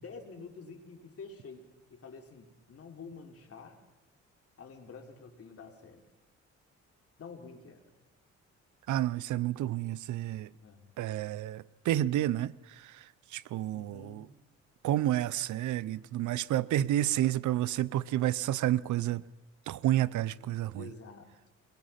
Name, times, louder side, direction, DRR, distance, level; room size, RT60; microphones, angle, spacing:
voice 1, 0.0-1.6 1.9-3.8 4.6-6.0 7.2-7.8 10.6-10.9 13.7-14.3 20.7-21.3, left 4 dB, 50° left, 3.5 m, -48 dB
voice 2, 8.9-10.5 11.0-13.0 13.3-14.3 14.8-19.2 19.7-20.9, right 13 dB, 75° right, 0.7 m, -30 dB
23.5 x 21.5 x 5.8 m
cardioid pair, 90°, 30 cm